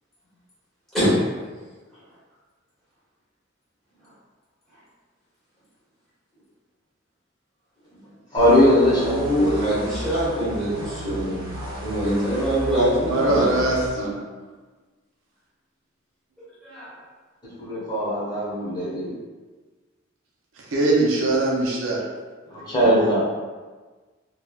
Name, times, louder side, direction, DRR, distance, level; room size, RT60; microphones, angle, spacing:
voice 1, 8.3-9.7 17.6-19.1 22.5-23.2, equal, 20° left, -9 dB, 0.9 m, -20 dB
sound 1, 8.4-13.9, equal, 25° right, 0.6 m, -34 dB
voice 2, 8.9-13.6 16.6-16.9, right 1 dB, ahead, -12 dB, 1.3 m, -24 dB
voice 3, 13.1-14.2 20.7-22.0, right 2 dB, 80° right, -3 dB, 0.5 m, -21 dB
3.1 x 2.3 x 2.3 m, 1.4 s
head